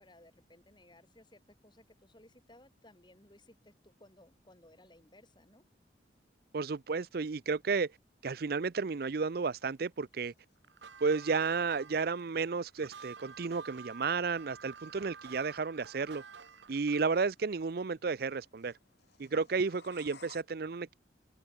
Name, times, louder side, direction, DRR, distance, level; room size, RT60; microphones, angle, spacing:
voice 1, 0.0-5.6, left 1 dB, 25° left, 6.9 m, -60 dB
voice 2, 6.5-7.9 8.2-10.3 11.0-16.2 16.7-18.7 19.2-20.9, right 4 dB, 55° right, 0.5 m, -32 dB
sound 1, 9.1-20.4, left 5 dB, 65° left, 4.8 m, -62 dB
sound 2, 10.6-17.2, right 6 dB, 80° right, 0.9 m, -51 dB
head